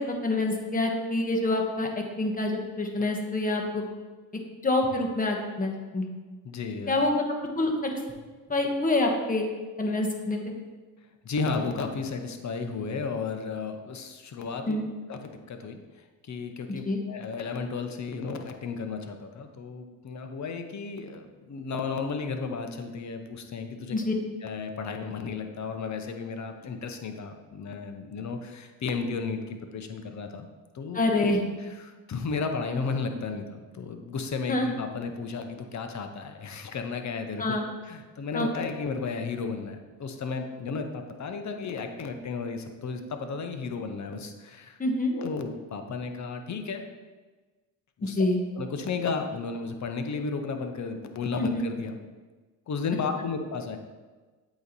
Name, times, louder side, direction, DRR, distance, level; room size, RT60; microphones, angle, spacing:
voice 1, 0.0-3.8 4.6-6.1 6.9-7.1 7.6-7.9 8.5-9.5 9.8-10.4 14.7-14.8 16.8-17.0 23.9-24.1 30.9-31.4 34.5-34.7 37.4-37.6 38.3-38.5 44.8-45.1 48.0-48.4 51.4-51.6, left 2 dB, 20° left, 1 dB, 1.2 m, -26 dB
voice 2, 6.4-7.0 11.2-14.8 15.1-15.8 16.3-24.0 24.4-29.4 29.7-30.5 30.7-31.1 31.6-37.5 37.8-44.8 45.1-46.8 48.0-48.2 48.5-52.0 52.7-53.8, left 4 dB, 40° left, 6 dB, 0.8 m, -33 dB
8.0 x 3.1 x 4.1 m, 1.3 s
supercardioid pair, 70°, 46 cm